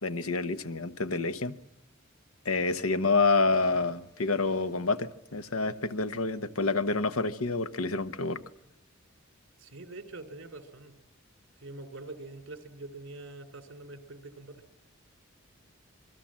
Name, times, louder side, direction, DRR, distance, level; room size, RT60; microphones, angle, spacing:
voice 1, 0.0-1.5 2.4-8.4, left 3 dB, 90° left, 1.1 m, -28 dB
sound 1, 3.5-5.9, left 1 dB, 20° left, 7.1 m, -59 dB
voice 2, 9.6-10.9 11.6-14.6, right 2 dB, 60° right, 3.1 m, -44 dB
27.0 x 22.5 x 7.5 m
head